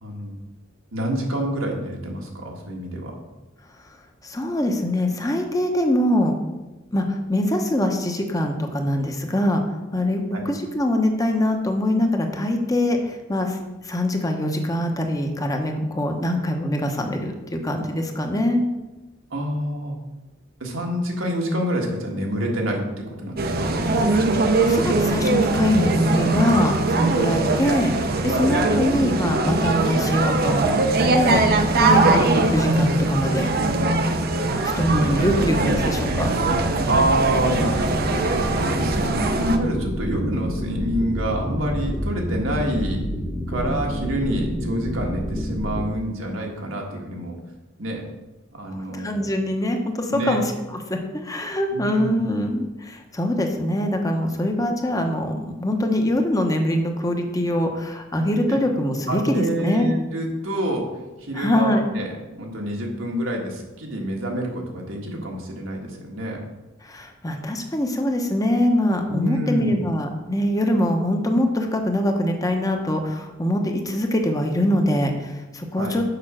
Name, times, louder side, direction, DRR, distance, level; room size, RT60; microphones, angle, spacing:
voice 1, 0.0-0.4 0.9-3.1 10.3-10.4 19.3-20.0 20.6-24.0 32.1-32.3 36.9-38.5 38.7-43.0 43.5-47.3 47.8-48.1 48.5-49.3 50.1-50.4 51.7-52.3 58.5-58.6 59.1-60.8 61.2-66.4 69.1-69.8 75.7-76.0, right 1 dB, 80° right, 0 dB, 1.7 m, -27 dB
voice 2, 4.2-6.3 6.9-9.6 9.9-13.6 13.8-18.6 24.6-30.8 31.1-31.4 31.8-33.5 34.8-36.3 48.7-50.4 50.9-59.9 61.3-61.8 66.8-76.0, left 1 dB, 20° left, 4 dB, 0.9 m, -23 dB
sound 1, 23.4-39.6, right 2 dB, 50° right, 0.7 m, -21 dB
sound 2, 34.8-45.8, equal, 5° right, 1.0 m, -28 dB
6.8 x 5.4 x 6.1 m, 1.1 s
head